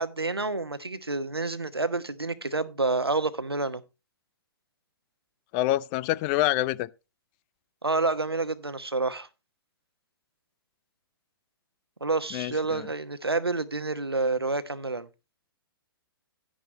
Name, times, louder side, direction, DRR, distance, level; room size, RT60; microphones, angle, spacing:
voice 1, 0.0-3.8 7.8-9.3 12.0-15.1, right 3 dB, 85° right, 1.1 m, -28 dB
voice 2, 5.5-6.9 12.3-12.9, left 16 dB, 25° left, 0.4 m, -26 dB
11.0 x 10.0 x 3.2 m
figure-of-eight pair, 115°, 13 cm